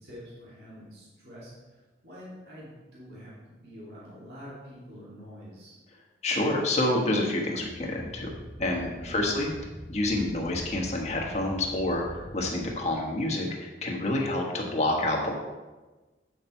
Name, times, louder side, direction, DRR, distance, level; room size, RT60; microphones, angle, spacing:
voice 1, 0.0-5.7 9.0-9.5, equal, 65° right, -8 dB, 2.7 m, -46 dB
voice 2, 6.2-8.3 8.6-9.5 9.9-15.3, left 1 dB, 40° left, 0 dB, 1.5 m, -28 dB
sound 1, 7.6-12.9, equal, 10° left, 0.8 m, -43 dB
8.5 x 6.3 x 4.5 m, 1.2 s
head